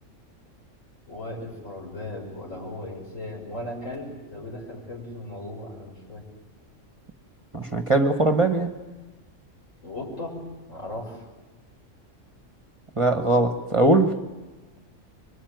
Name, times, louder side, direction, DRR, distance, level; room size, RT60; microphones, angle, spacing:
voice 1, 1.1-6.2 9.8-10.4 10.7-11.3, left 1 dB, 75° left, -1 dB, 6.8 m, -37 dB
voice 2, 7.5-8.7 13.0-14.1, right 2 dB, 25° right, 8 dB, 1.4 m, -20 dB
25.5 x 23.5 x 9.4 m, 1.2 s
omnidirectional pair, 1.3 m